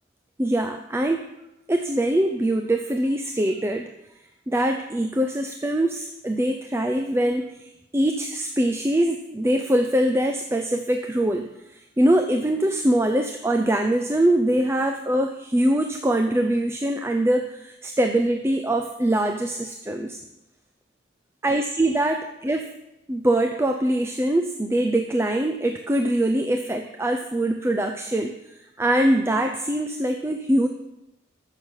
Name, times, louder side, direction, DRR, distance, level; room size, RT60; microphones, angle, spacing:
voice 1, 0.4-1.2 1.7-3.9 4.5-20.2 21.4-22.7 23.1-30.7, right 1 dB, 15° right, 5 dB, 0.5 m, -23 dB
14.0 x 6.5 x 5.6 m, 0.92 s
head